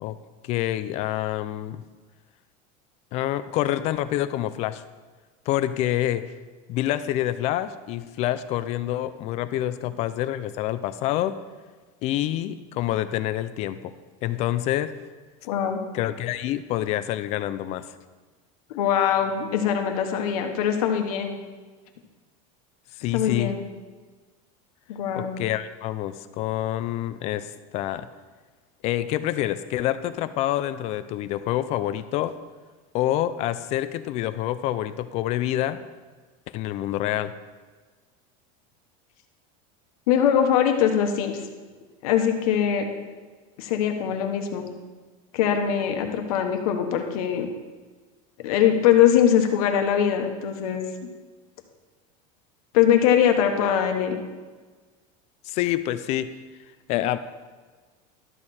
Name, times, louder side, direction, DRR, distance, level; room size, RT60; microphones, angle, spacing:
voice 1, 0.4-1.8 3.1-4.8 5.5-6.3 6.7-11.4 12.0-13.9 14.2-14.9 15.9-17.9 23.0-23.5 25.2-28.1 28.8-32.4 32.9-35.8 36.5-37.3 55.4-56.3 56.9-57.2, left 13 dB, 35° left, 13 dB, 0.4 m, -27 dB
voice 2, 15.4-15.8 18.7-21.4 23.1-23.6 24.9-25.4 40.1-41.4 42.0-42.9 43.6-44.7 45.3-47.5 48.4-50.8 52.7-54.2, left 9 dB, 85° left, 5 dB, 1.3 m, -22 dB
12.5 x 6.7 x 4.2 m, 1.4 s
cardioid pair, 170°, 18 cm